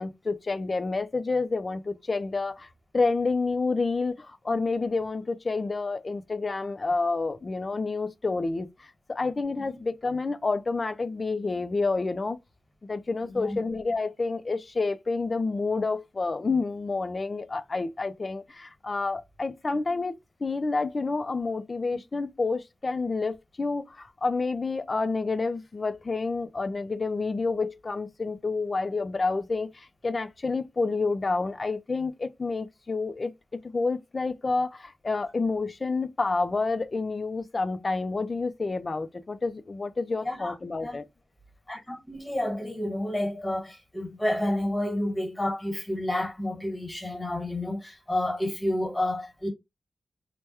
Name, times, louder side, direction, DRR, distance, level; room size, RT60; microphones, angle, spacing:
voice 1, 0.0-2.7 2.9-12.4 12.9-20.1 20.4-33.3 33.6-41.0, left 3 dB, 40° left, 0.4 m, -29 dB
voice 2, 13.2-13.6 40.2-40.5 40.8-41.0 41.7-49.5, left 1 dB, 15° left, 1.4 m, -30 dB
3.3 x 2.1 x 2.9 m
wide cardioid pair, 105°, 0 cm